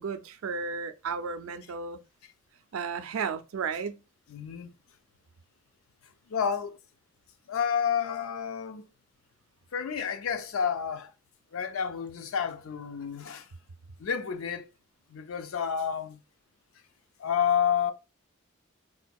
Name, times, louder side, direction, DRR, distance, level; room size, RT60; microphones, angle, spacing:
voice 1, 0.0-2.0 2.7-4.0, right 5 dB, 90° right, 0.4 m, -33 dB
voice 2, 4.3-4.7 6.3-6.8 7.5-8.8 9.7-11.1 11.5-13.5 14.0-14.7 15.1-16.2 17.2-17.9, left 7 dB, 80° left, 0.4 m, -30 dB
3.8 x 2.6 x 2.3 m
head